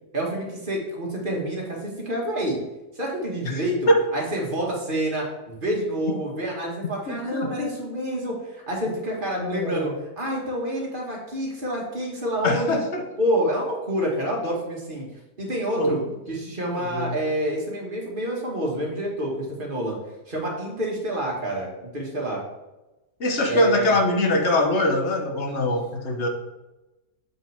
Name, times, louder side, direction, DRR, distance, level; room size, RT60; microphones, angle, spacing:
voice 1, 0.1-2.6 2.9-9.9 10.2-12.8 13.2-15.1 15.4-16.0 16.3-20.0 20.3-22.4 23.5-23.9, right 1 dB, 35° right, -2 dB, 1.9 m, -28 dB
voice 2, 7.1-7.7 9.4-10.0 12.4-13.0 15.7-15.9 16.7-17.2 23.2-26.3, left 1 dB, 55° left, 2 dB, 1.2 m, -23 dB
7.7 x 5.5 x 3.5 m, 1.0 s
omnidirectional pair, 1.6 m